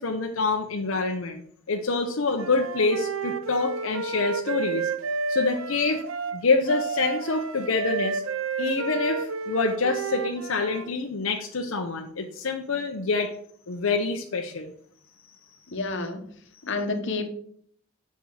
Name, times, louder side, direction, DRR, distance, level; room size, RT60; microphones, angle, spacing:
voice 1, 0.0-4.9 5.3-6.0 6.3-8.2 8.6-13.3 13.7-14.7, left 3 dB, 85° left, 3 dB, 0.8 m, -26 dB
Wind instrument woodwind instrument, 2.3-10.9, right 4 dB, 85° right, 0.7 m, -31 dB
voice 2, 15.7-16.2 16.6-17.3, left 3 dB, 65° left, 7 dB, 1.1 m, -29 dB
9.4 x 5.6 x 4.8 m, 0.63 s
head